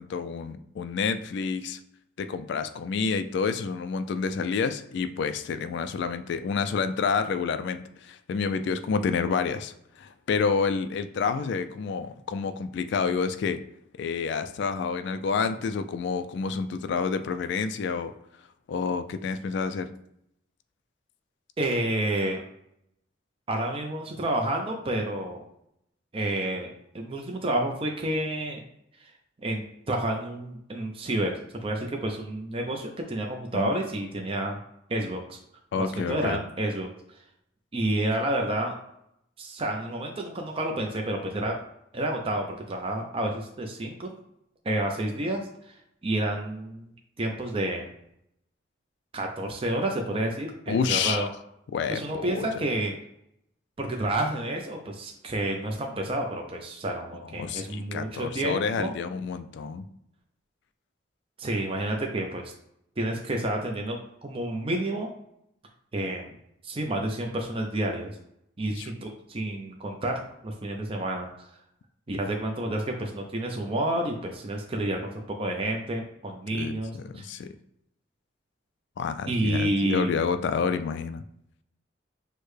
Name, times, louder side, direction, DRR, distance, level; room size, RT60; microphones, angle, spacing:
voice 1, 0.0-1.8 2.2-13.6 14.0-18.1 18.7-19.9 33.5-33.7 35.7-36.4 50.7-51.3 51.7-52.5 57.3-59.9 68.8-68.9 76.5-77.5 79.0-81.2, left 5 dB, 65° left, 10 dB, 0.3 m, -29 dB
voice 2, 21.6-22.4 23.5-25.4 26.1-28.6 29.0-29.1 29.4-31.3 31.6-34.6 34.9-35.4 35.8-36.9 37.7-38.8 39.4-41.6 41.9-44.1 44.6-46.9 47.2-47.9 49.1-51.3 51.9-52.9 53.8-58.9 61.4-62.5 63.0-65.1 65.9-66.3 66.6-68.1 68.6-71.5 72.1-77.2 79.3-80.2, right 1 dB, 30° right, 1 dB, 0.5 m, -29 dB
6.4 x 2.1 x 3.2 m, 0.77 s
head